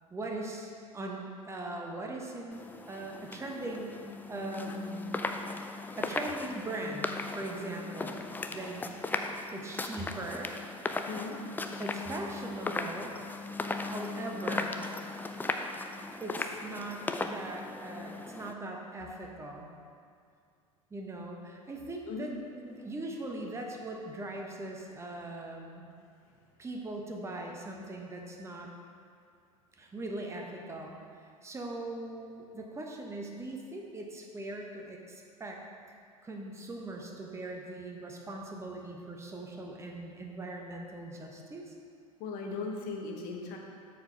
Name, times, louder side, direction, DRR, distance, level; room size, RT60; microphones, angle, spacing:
voice 1, 0.1-4.0 4.3-5.3 6.0-8.8 9.5-10.5 11.8-13.1 13.9-14.8 16.2-19.7 20.9-25.9 26.6-28.7 29.8-35.6 36.2-41.7, right 2 dB, 15° right, 0 dB, 1.0 m, -40 dB
sound 1, 2.5-18.5, left 3 dB, 10° left, 0.4 m, -37 dB
voice 2, 11.1-11.4 22.0-22.3 42.2-43.6, left 4 dB, 50° left, 1 dB, 1.2 m, -37 dB
7.3 x 4.7 x 5.6 m, 2.3 s
figure-of-eight pair, 75°, 18 cm